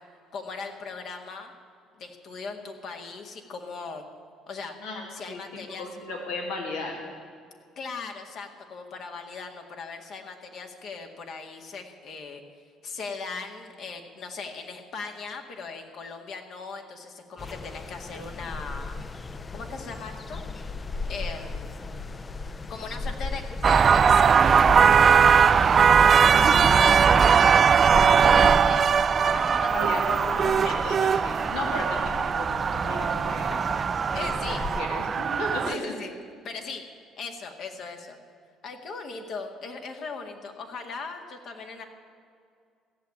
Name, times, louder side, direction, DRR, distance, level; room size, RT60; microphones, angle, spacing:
voice 1, 0.3-1.5 1.9-4.0 4.5-4.7 5.1-5.9 7.8-12.4 12.8-19.0 19.5-20.4 21.1-21.7 22.7-25.7 26.6-27.6 28.2-30.7 34.2-34.6 35.6-36.1 36.4-36.8 37.2-38.2 38.6-41.8, left 4 dB, 60° left, 4 dB, 1.9 m, -39 dB
voice 2, 4.8-5.4 5.7-7.0 25.5-26.0 26.3-26.8 27.2-27.5 29.7-33.5 34.1-34.3 34.8-36.0, left 2 dB, 80° left, 1 dB, 2.4 m, -35 dB
sound 1, 17.4-34.8, left 3 dB, 30° left, 0.6 m, -37 dB
sound 2, 23.6-35.7, right 6 dB, 45° right, 0.3 m, -20 dB
15.0 x 7.4 x 9.5 m, 2.3 s
supercardioid pair, 75°, 0 cm